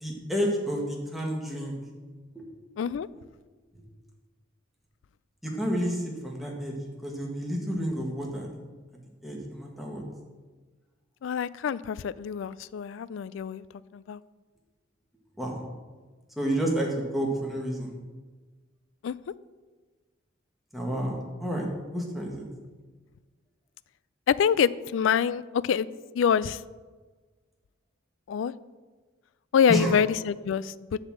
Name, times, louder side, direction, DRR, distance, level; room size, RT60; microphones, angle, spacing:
voice 1, 0.0-1.7 2.3-2.4 5.4-6.7 7.0-8.5 9.2-10.0 15.4-15.6 16.4-17.9 20.7-21.7 21.9-22.4 29.7-29.9, equal, ahead, -2 dB, 1.7 m, -30 dB
voice 2, 2.8-3.1 11.2-13.6 13.9-14.2 19.0-19.1 24.3-25.9 26.1-26.6 28.3-28.5 29.5-31.0, left 7 dB, 70° left, 18 dB, 0.3 m, -26 dB
11.0 x 4.1 x 7.6 m, 1.4 s
head